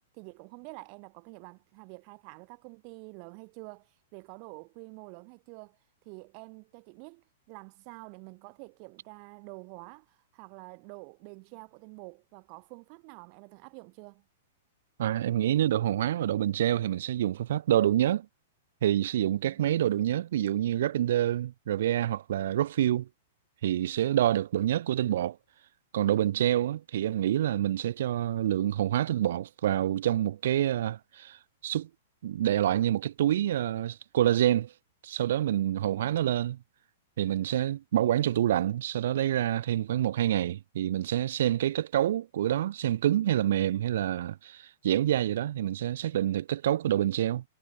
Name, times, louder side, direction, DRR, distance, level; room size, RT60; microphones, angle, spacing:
voice 1, 0.0-5.8 6.0-14.3 19.1-19.6, right 40 dB or more, 40° right, 2.9 m, -48 dB
voice 2, 15.0-18.3 18.8-23.1 23.6-25.4 25.9-31.4 31.6-31.9 32.2-34.7 35.0-36.6 37.2-47.4, right 12 dB, 65° right, 1.3 m, -27 dB
hypercardioid pair, 155°, 0 cm